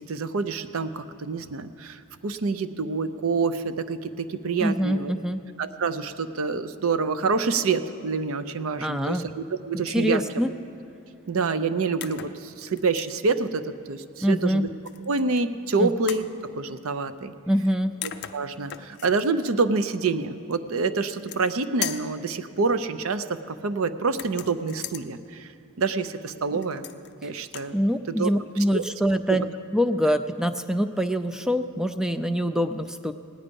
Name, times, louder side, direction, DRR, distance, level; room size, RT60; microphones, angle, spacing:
voice 1, 0.0-5.1 5.6-10.2 11.3-14.7 15.1-16.2 16.6-17.3 18.0-25.5 25.8-26.9 27.2-27.8 28.1-28.3 28.7-28.8 29.3-29.4, right 4 dB, 65° right, 12 dB, 0.6 m, -27 dB
voice 2, 4.6-5.4 8.8-9.2 9.7-10.5 14.2-14.7 15.8-15.9 17.5-18.0 27.2-27.3 27.7-29.4 29.7-33.1, equal, 5° right, 9 dB, 0.3 m, -24 dB
sound 1, 12.0-12.4 12.8-13.2 14.9-15.4 16.1-16.3 17.7-17.8 18.0-19.2 21.0-21.5 21.8-22.2 24.1-25.1 26.6-27.1 27.4-27.7, left 11 dB, 50° left, 0.5 m, -37 dB
17.5 x 9.8 x 5.3 m, 2.6 s
head